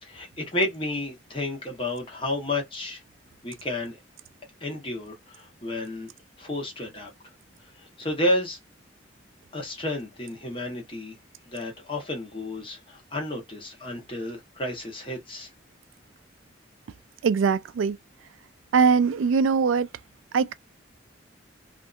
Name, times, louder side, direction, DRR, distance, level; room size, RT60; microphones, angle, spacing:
voice 1, 0.0-3.0 3.4-4.0 4.6-6.1 6.4-7.1 7.8-8.6 9.5-11.1 11.5-15.5, left 1 dB, 25° left, 1.0 m, -31 dB
voice 2, 17.2-18.0 18.7-19.9 20.3-20.5, right 5 dB, 90° right, 0.3 m, -21 dB
2.7 x 2.5 x 2.3 m
head